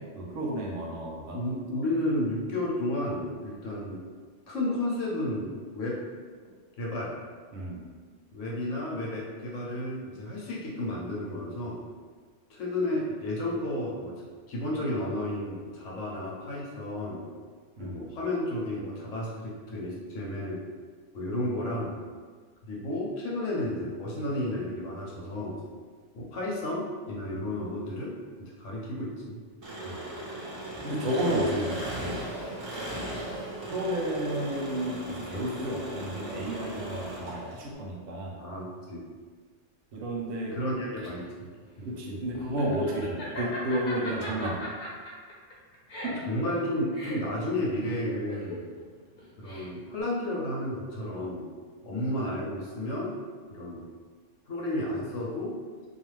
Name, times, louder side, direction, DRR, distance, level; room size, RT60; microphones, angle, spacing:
voice 1, 0.0-1.4 7.5-7.9 17.8-18.1 27.3-27.4 29.8-30.0 30.8-32.2 32.9-33.2 33.7-38.4 39.9-40.6 41.8-44.6 46.0-46.2, right 1 dB, 90° right, -1 dB, 0.9 m, -32 dB
voice 2, 1.3-4.0 4.5-6.0 6.8-7.1 8.3-11.8 12.5-17.2 17.8-20.6 21.1-22.0 22.7-25.6 26.1-29.4 31.3-31.4 38.4-39.0 40.5-41.2 41.8-41.9 46.3-48.7 49.4-51.5 51.8-53.2 53.5-53.9 54.5-55.6, left 1 dB, 85° left, -4 dB, 1.1 m, -32 dB
Engine, 29.6-37.7, right 1 dB, 35° right, 0.4 m, -38 dB
Laughter, 40.6-50.0, left 1 dB, 50° left, 0.7 m, -40 dB
2.4 x 2.3 x 3.1 m, 1.5 s
omnidirectional pair, 1.2 m